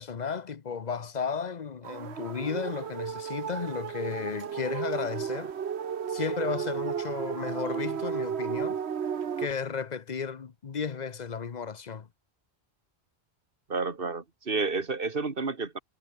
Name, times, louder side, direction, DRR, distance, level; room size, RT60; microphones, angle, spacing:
voice 1, 0.0-5.5 6.1-8.8 9.4-12.1, left 6 dB, 45° left, 0.9 m, -34 dB
sound 1, 1.8-9.5, right 7 dB, 75° right, 1.3 m, -33 dB
voice 2, 13.7-15.8, right 4 dB, 55° right, 2.3 m, -30 dB
omnidirectional pair, 1.1 m